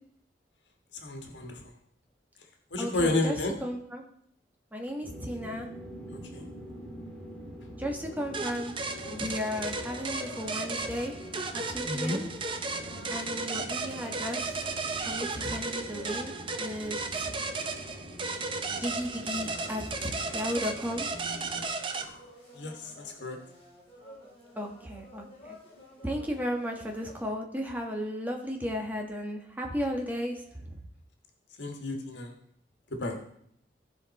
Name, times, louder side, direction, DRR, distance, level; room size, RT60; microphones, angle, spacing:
voice 1, 1.0-1.7 2.7-3.5 6.1-6.4 11.8-12.2 21.9-22.3 22.5-23.4 31.6-32.3 32.9-33.2, left 2 dB, 85° left, 3 dB, 1.5 m, -32 dB
voice 2, 2.8-4.0 4.7-5.7 7.8-8.7 9.0-11.1 11.5-12.3 13.1-14.5 15.0-16.3 16.6-17.3 18.7-21.1 24.5-25.6 26.0-30.8, equal, 10° right, 1 dB, 1.3 m, -35 dB
sound 1, 5.0-21.7, equal, 5° left, 2.5 m, -45 dB
sound 2, 7.9-27.2, left 1 dB, 30° left, 4.3 m, -52 dB
sound 3, 8.3-22.0, right 3 dB, 30° right, 0.6 m, -35 dB
15.5 x 5.2 x 4.2 m, 0.68 s
head